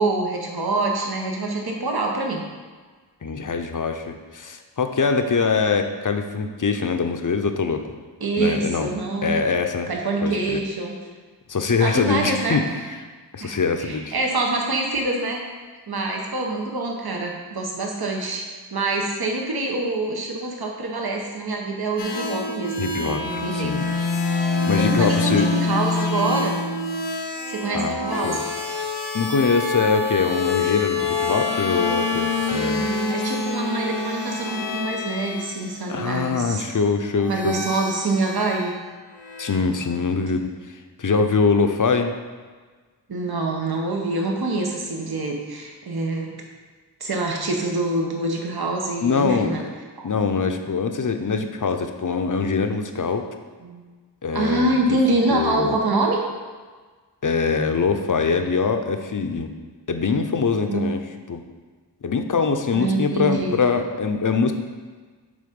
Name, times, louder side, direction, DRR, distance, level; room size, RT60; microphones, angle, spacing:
voice 1, 0.0-2.4 8.2-9.4 9.9-10.9 11.8-12.6 13.4-15.4 15.9-23.7 24.3-24.4 24.8-26.6 27.5-28.4 32.7-36.7 37.3-38.7 43.1-46.3 47.0-49.6 50.0-50.1 53.6-53.8 54.3-56.2 60.7-60.8 62.7-63.6, right 2 dB, 60° right, 0 dB, 1.1 m, -25 dB
voice 2, 3.2-7.8 8.4-8.9 9.2-9.9 10.2-10.6 11.5-12.7 13.3-14.1 22.8-23.9 24.4-25.5 27.7-28.4 28.7-32.9 35.9-37.6 39.4-42.1 49.0-49.7 50.0-53.3 54.2-55.0 55.3-55.8 57.2-59.5 59.9-61.0 61.3-61.4 62.0-64.5, left 5 dB, 45° left, 6 dB, 0.7 m, -23 dB
sound 1, 22.0-35.6 37.2-38.7 39.1-39.6, left 3 dB, 90° left, 1.0 m, -26 dB
8.7 x 3.7 x 5.3 m, 1.4 s
wide cardioid pair, 60°, 43 cm